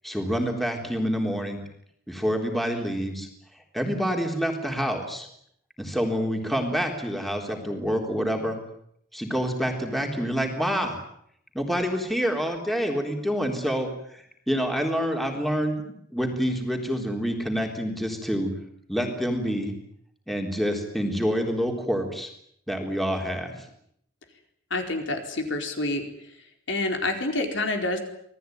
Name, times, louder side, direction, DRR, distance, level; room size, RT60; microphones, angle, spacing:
voice 1, 0.0-1.6 2.1-3.3 3.7-5.3 5.8-8.6 9.1-11.0 11.5-15.8 16.1-18.5 18.9-19.7 20.3-22.3 22.7-23.6, equal, ahead, 2 dB, 3.7 m, -27 dB
voice 2, 24.7-26.0 26.7-28.0, left 2 dB, 60° left, 4 dB, 4.6 m, -27 dB
27.0 x 19.0 x 9.4 m, 0.71 s
head